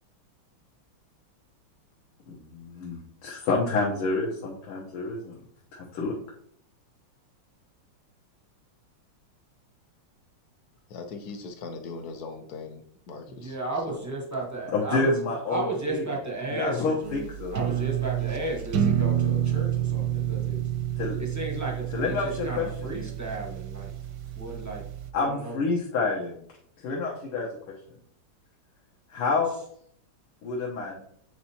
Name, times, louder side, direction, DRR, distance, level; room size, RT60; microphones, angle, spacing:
voice 1, 2.3-5.4 5.7-6.1 14.7-16.1 16.5-17.6 21.0-21.2 21.9-23.1 25.1-26.4 26.8-27.5 29.1-29.5 30.4-31.0, left 3 dB, 90° left, -4 dB, 2.0 m, -28 dB
voice 2, 10.9-12.8 13.1-13.6 13.9-14.1, left 4 dB, 60° left, 5 dB, 1.0 m, -39 dB
voice 3, 13.3-15.1 15.5-17.0 17.5-20.6 21.2-23.9 24.4-24.8 25.2-25.6, right 2 dB, 20° right, -1 dB, 0.4 m, -34 dB
sound 1, 17.0-25.1, right 10 dB, 70° right, 1.0 m, -29 dB
8.6 x 4.5 x 2.8 m, 0.66 s
omnidirectional pair, 2.3 m